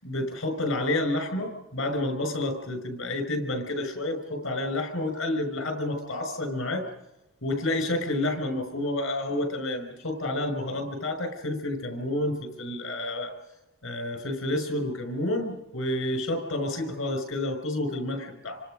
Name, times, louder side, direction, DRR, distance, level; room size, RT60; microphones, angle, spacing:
voice 1, 0.0-6.8 7.4-13.3 13.8-18.6, left 1 dB, 60° left, 7 dB, 5.9 m, -29 dB
27.5 x 25.0 x 5.2 m, 0.99 s
head